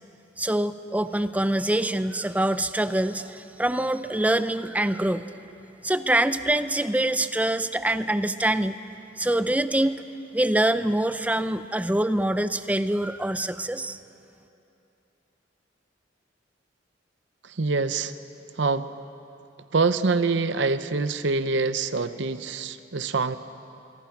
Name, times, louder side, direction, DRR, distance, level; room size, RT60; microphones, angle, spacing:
voice 1, 0.4-5.3 5.8-8.8 9.2-10.0 10.3-14.0, right 1 dB, 10° right, 12 dB, 0.5 m, -25 dB
voice 2, 17.4-18.1 18.6-18.9 19.7-23.4, right 3 dB, 65° right, 12 dB, 0.8 m, -25 dB
26.0 x 23.5 x 6.0 m, 2.8 s
head